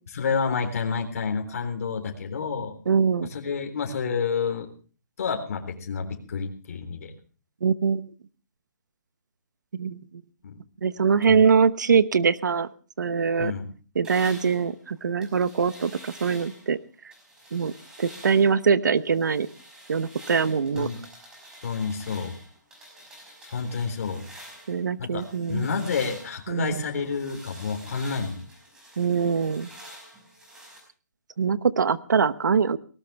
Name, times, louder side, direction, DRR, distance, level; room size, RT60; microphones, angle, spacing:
voice 1, 0.1-2.7 3.2-4.7 5.2-7.1 10.4-10.6 11.3-11.5 13.4-13.7 20.7-21.0 21.6-22.4 23.4-24.2 25.0-28.4, left 5 dB, 50° left, 3 dB, 3.8 m, -29 dB
voice 2, 2.9-3.3 7.6-8.0 9.8-10.0 10.8-12.7 13.0-13.5 14.0-16.8 17.5-17.7 18.0-19.5 19.9-20.9 24.7-25.7 26.5-26.8 29.0-29.7 31.4-32.8, right 6 dB, 75° right, 15 dB, 1.0 m, -23 dB
sound 1, 14.0-16.7 17.1-18.6 18.9-24.8 25.2-30.8, right 1 dB, 5° right, 5.2 m, -47 dB
19.0 x 18.5 x 3.4 m, 0.38 s
hypercardioid pair, 165°, 10 cm